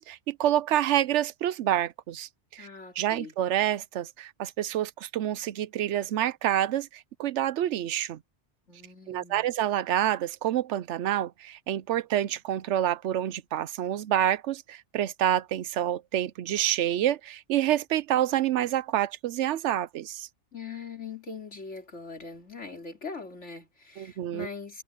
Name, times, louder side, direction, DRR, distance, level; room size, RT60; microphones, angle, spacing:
voice 1, 0.0-2.7 3.0-8.2 9.1-20.3 24.0-24.5, right 12 dB, 80° right, 0.9 m, -28 dB
voice 2, 2.6-3.3 8.7-9.5 20.5-24.8, left 5 dB, 90° left, 3.8 m, -41 dB
omnidirectional pair, 1.2 m